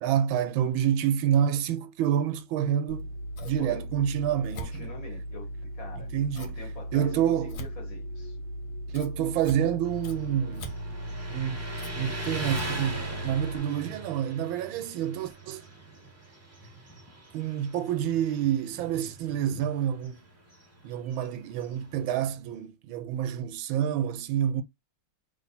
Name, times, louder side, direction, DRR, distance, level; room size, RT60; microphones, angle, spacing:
voice 1, 0.0-3.1 3.4-4.9 6.0-6.5 6.9-7.5 8.9-10.7 11.3-11.6 11.9-15.6 17.3-20.2 20.8-24.6, right 9 dB, 80° right, 1.3 m, -28 dB
Scissors, 2.9-13.6, equal, 70° left, 1.6 m, -37 dB
voice 2, 3.6-3.9 4.3-8.4, left 3 dB, 45° left, 1.6 m, -45 dB
Motorcycle, 9.8-22.5, right 1 dB, 15° right, 0.6 m, -41 dB
3.4 x 3.1 x 4.1 m
omnidirectional pair, 2.2 m